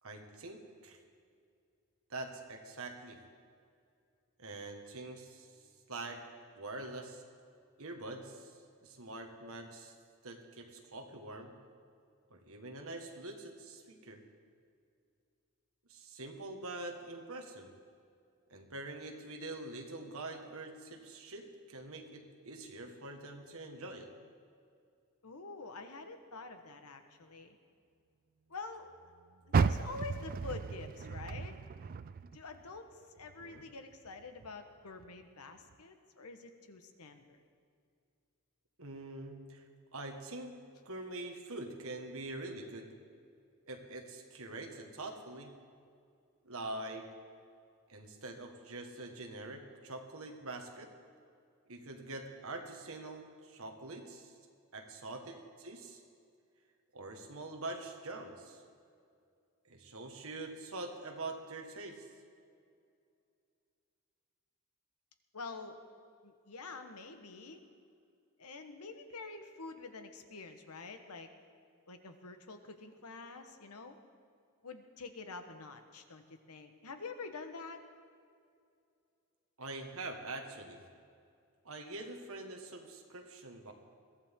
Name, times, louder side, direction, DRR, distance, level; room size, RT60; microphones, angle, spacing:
voice 1, 0.0-1.0 2.1-3.2 4.4-5.5 5.9-6.3 6.5-7.2 7.8-8.5 8.8-9.9 10.2-11.5 12.3-14.2 15.9-17.7 18.5-24.1 33.4-33.6 38.8-39.6 39.9-40.6 40.8-42.9 43.7-45.5 46.4-47.1 47.9-50.9 51.7-54.4 54.7-56.0 56.9-58.6 59.6-62.1 79.6-80.8 81.6-83.7, right 2 dB, 70° right, 4 dB, 1.7 m, -45 dB
voice 2, 25.2-27.6 28.5-28.9 29.5-31.6 32.3-37.4 65.3-65.8 66.2-67.6 68.4-71.3 71.9-74.0 74.6-77.8, left 3 dB, 85° left, 7 dB, 1.2 m, -47 dB
Car, 29.5-32.8 33.2-34.5 35.0-35.1 35.7-35.8, right 5 dB, 40° right, 0.3 m, -34 dB
22.0 x 15.0 x 3.7 m, 2.4 s
head